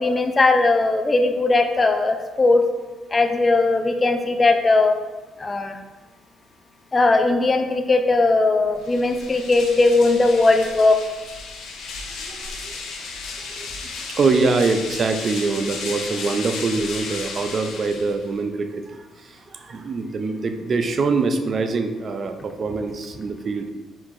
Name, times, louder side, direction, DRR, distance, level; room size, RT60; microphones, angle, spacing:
voice 1, 0.0-2.6 3.1-4.9 5.4-5.8 6.9-11.0, left 3 dB, 25° left, 6 dB, 0.4 m, -18 dB
sound 1, 8.7-18.4, left 4 dB, 85° left, 0.6 m, -34 dB
voice 2, 12.2-12.7 13.4-13.7 14.1-23.7, right 4 dB, 50° right, 7 dB, 0.4 m, -24 dB
4.5 x 3.8 x 2.5 m, 1.2 s
cardioid pair, 90°, 0 cm